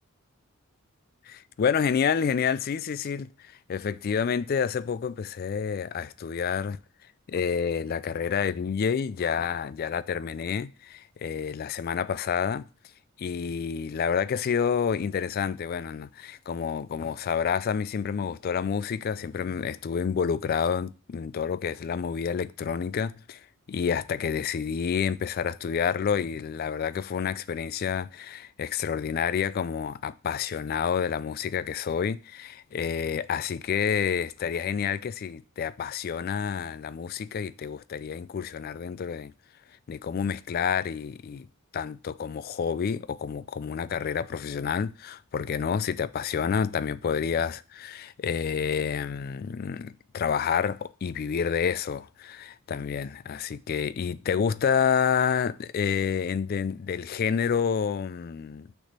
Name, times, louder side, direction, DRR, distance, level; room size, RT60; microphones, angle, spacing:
voice 1, 1.3-6.8 7.3-12.7 13.2-23.4 23.7-39.3 39.9-41.5 41.7-58.7, left 7 dB, 45° left, 0.3 m, -29 dB
6.4 x 3.4 x 5.9 m
head